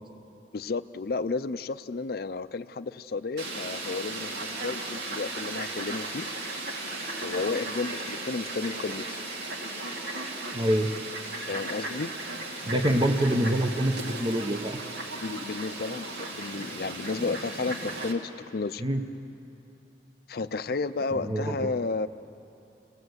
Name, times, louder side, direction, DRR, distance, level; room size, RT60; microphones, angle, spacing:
voice 1, 0.5-6.3 7.2-9.2 11.5-12.1 15.2-18.8 20.3-22.1, left 3 dB, 60° left, 11 dB, 0.5 m, -32 dB
Fowl, 3.4-18.1, right 2 dB, 70° right, 2.7 m, -36 dB
voice 2, 10.5-10.9 12.6-14.8 18.8-19.1 21.2-21.7, right 1 dB, 30° right, 5 dB, 1.0 m, -26 dB
27.5 x 18.0 x 7.9 m, 2.9 s
head